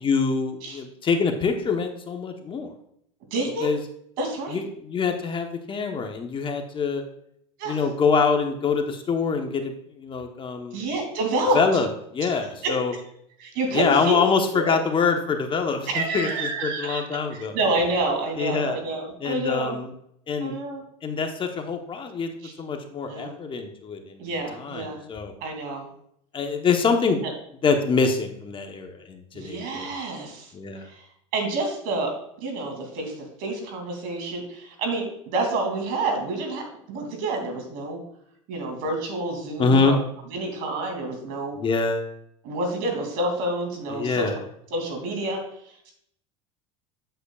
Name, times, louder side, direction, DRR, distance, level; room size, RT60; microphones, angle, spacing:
voice 1, 0.0-2.7 3.6-3.8 4.5-7.0 7.7-10.8 11.5-12.9 13.7-17.5 18.4-18.8 19.2-19.9 20.3-20.5 21.0-22.3 22.6-24.2 24.5-25.3 26.3-27.2 27.6-29.9 30.5-30.9 39.6-40.0 41.5-42.1 43.9-44.4, left 5 dB, 30° left, 5 dB, 1.0 m, -25 dB
voice 2, 3.3-3.7 4.2-4.6 7.6-7.8 10.7-11.6 12.6-12.8 13.4-14.2 14.5-14.8 15.9-17.0 17.3-19.8 20.4-20.8 22.4-22.5 23.1-23.4 24.2-25.0 25.4-25.9 27.2-27.3 29.3-30.5 30.8-31.0 31.3-38.0 38.5-40.0 40.3-41.6 42.4-44.4 44.7-45.9, right 2 dB, 65° right, 3 dB, 2.7 m, -28 dB
8.1 x 7.9 x 2.4 m, 0.71 s
supercardioid pair, 105°, 17 cm